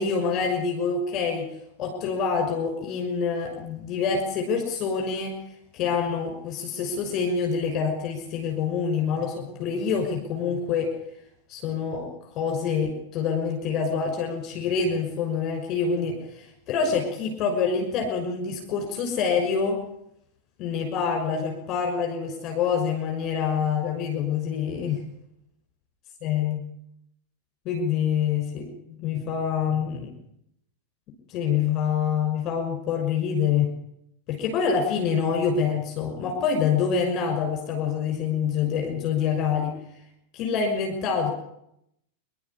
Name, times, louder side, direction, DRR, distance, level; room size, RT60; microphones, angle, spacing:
voice 1, 0.0-1.4 1.8-5.4 5.7-10.9 11.5-12.1 12.3-19.8 20.6-25.0 26.2-26.6 27.6-28.7 29.0-30.1 31.3-33.7 34.3-39.7 40.3-41.3, left 6 dB, 35° left, 3 dB, 6.2 m, -26 dB
27.0 x 12.5 x 9.8 m, 0.76 s
figure-of-eight pair, 90°, 0 cm